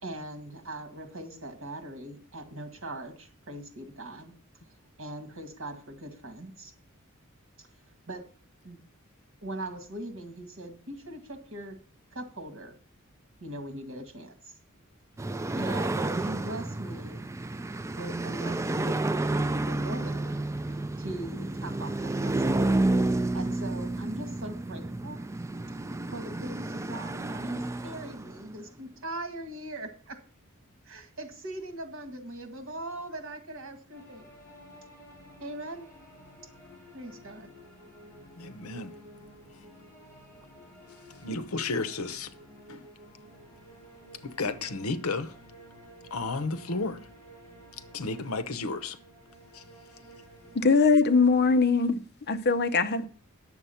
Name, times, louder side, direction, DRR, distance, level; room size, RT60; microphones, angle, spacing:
voice 1, 0.0-4.3 5.0-6.7 7.6-7.7 8.1-8.2 8.6-8.8 9.4-11.8 12.1-12.7 13.4-14.5 15.5-17.2 18.0-19.0 19.6-20.4 20.7-22.7 23.1-25.2 26.1-30.2 30.8-34.3 35.4-35.9 36.9-37.5, right 1 dB, 65° right, 1.8 m, -40 dB
sound 1, 15.2-28.6, right 2 dB, 15° right, 0.3 m, -30 dB
sound 2, 33.9-51.6, equal, 10° left, 4.2 m, -52 dB
voice 2, 38.4-39.0 41.2-42.3 42.7-42.9 44.2-45.3 46.1-47.1 47.9-49.0 49.5-49.6, left 3 dB, 80° left, 0.8 m, -32 dB
voice 3, 50.5-53.1, left 4 dB, 50° left, 0.7 m, -22 dB
9.6 x 7.2 x 5.6 m
head